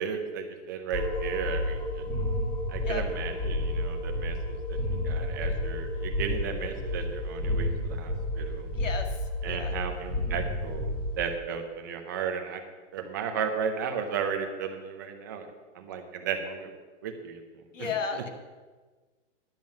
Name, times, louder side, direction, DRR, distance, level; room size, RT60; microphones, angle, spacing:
voice 1, 0.0-2.1 2.7-4.8 5.0-8.7 9.4-12.6 12.9-15.5 15.7-16.7 17.0-17.4 17.8-18.2, right 6 dB, 15° right, 5 dB, 0.6 m, -34 dB
sound 1, 0.9-11.2, left 1 dB, 10° left, 2.0 m, -31 dB
voice 2, 8.7-9.1 9.4-9.8 17.7-18.3, left 5 dB, 90° left, 5 dB, 2.0 m, -33 dB
10.5 x 7.4 x 7.3 m, 1.4 s
hypercardioid pair, 170°, 37 cm